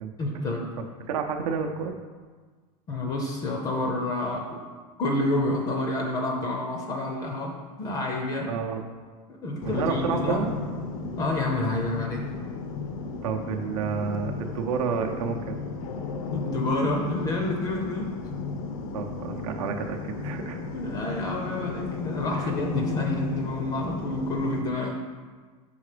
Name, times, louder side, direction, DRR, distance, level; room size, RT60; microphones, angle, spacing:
voice 1, 0.2-0.8 2.9-4.6 5.0-8.6 9.3-10.4 11.2-12.3 16.3-18.2 20.7-25.0, left 2 dB, 20° left, 1 dB, 0.5 m, -29 dB
voice 2, 0.8-1.9 8.5-8.8 9.7-10.5 13.2-15.6 18.9-20.6 22.4-22.5, right 6 dB, 80° right, 4 dB, 0.7 m, -30 dB
sound 1, 9.6-24.6, left 4 dB, 80° left, 0.7 m, -34 dB
5.6 x 3.8 x 4.9 m, 1.5 s
supercardioid pair, 165°, 18 cm